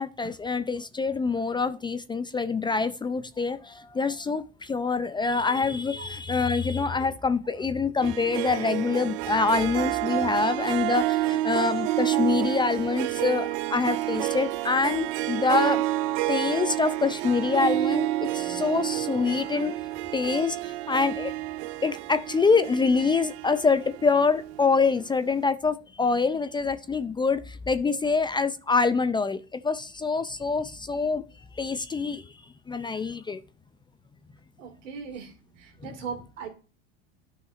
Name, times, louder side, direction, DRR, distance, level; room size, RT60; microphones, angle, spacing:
voice 1, 0.0-15.8 16.3-19.7 20.1-21.3 21.8-31.2 31.6-32.2 32.7-33.4, left 4 dB, 15° left, 0.4 m, -25 dB
Harp, 8.0-24.8, right 16 dB, 65° right, 0.6 m, -29 dB
voice 2, 34.6-35.3 35.8-36.5, right 6 dB, 90° right, 2.3 m, -37 dB
12.5 x 5.7 x 2.5 m
supercardioid pair, 110°, 37 cm